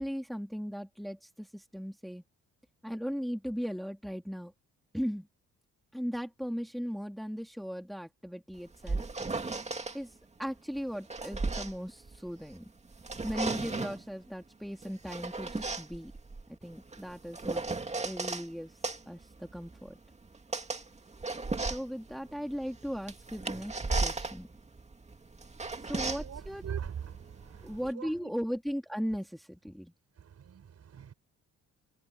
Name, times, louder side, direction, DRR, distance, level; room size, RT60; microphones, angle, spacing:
voice 1, 0.0-2.2 2.8-4.5 4.9-5.3 5.9-9.0 9.9-12.7 13.2-16.1 16.5-17.6 18.0-18.7 19.1-20.0 21.7-24.5 25.8-26.6 27.6-29.9, equal, ahead, 2.9 m, -37 dB
sound 1, 8.6-10.0 10.8-12.6 12.9-14.1 14.8-18.5 18.8-27.9, right 3 dB, 20° right, 2.3 m, -36 dB
voice 2, 25.6-28.3 30.2-31.1, right 8 dB, 55° right, 7.7 m, -43 dB
cardioid pair, 90°, 30 cm